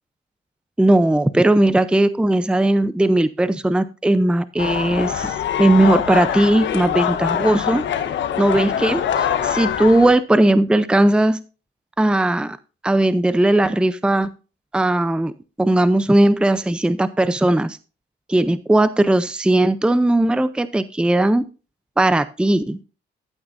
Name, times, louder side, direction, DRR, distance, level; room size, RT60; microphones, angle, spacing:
voice 1, 0.8-7.8 8.4-11.4 12.0-12.6 12.8-14.3 14.7-15.3 15.6-17.8 18.3-21.4 22.0-22.8, right 1 dB, 5° right, 0.6 m, -18 dB
sound 1, 4.6-10.1, left 9 dB, 65° left, 1.2 m, -23 dB
12.5 x 8.6 x 2.6 m
cardioid pair, 90°, 20 cm